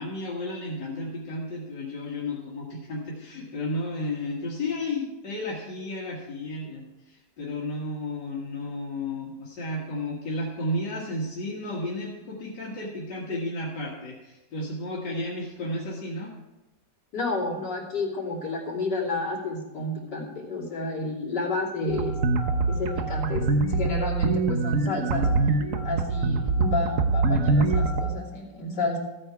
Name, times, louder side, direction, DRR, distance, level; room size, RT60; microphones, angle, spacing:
voice 1, 0.0-16.3, left 1 dB, 90° left, -4 dB, 2.3 m, -33 dB
voice 2, 17.1-22.2 22.7-25.3 25.8-29.0, left 2 dB, 75° left, -5 dB, 3.6 m, -30 dB
sound 1, 21.9-28.1, right 3 dB, 55° right, 1.2 m, -24 dB
14.5 x 8.8 x 4.7 m, 1.1 s
omnidirectional pair, 1.9 m